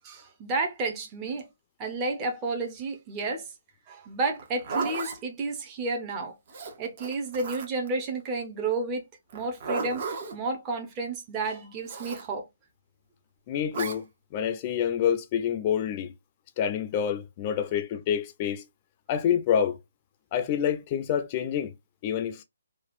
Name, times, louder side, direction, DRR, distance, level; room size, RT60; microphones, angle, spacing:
voice 1, 0.0-1.5 1.8-3.5 3.9-6.3 6.8-9.1 9.3-12.5, right 3 dB, 20° right, 0.9 m, -31 dB
Zipper (clothing), 4.3-5.2 6.5-7.9 9.3-10.4 11.9-12.3 13.7-14.0, right 4 dB, 45° right, 1.1 m, -34 dB
voice 2, 13.5-16.1 16.6-18.6 19.1-19.8 20.3-21.7 22.0-22.4, left 9 dB, 30° left, 0.6 m, -27 dB
4.1 x 2.4 x 2.4 m
figure-of-eight pair, 145°, 0 cm